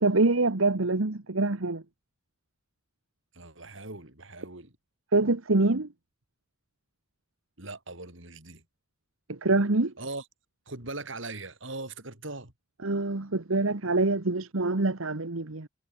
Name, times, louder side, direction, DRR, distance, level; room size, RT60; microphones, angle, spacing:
voice 1, 0.0-1.8 5.1-5.9 9.3-9.9 12.8-15.7, right 2 dB, 90° right, 1.5 m, -25 dB
voice 2, 3.3-4.8 7.6-8.6 10.0-10.2 10.7-12.5, right 2 dB, 65° right, 5.5 m, -40 dB
head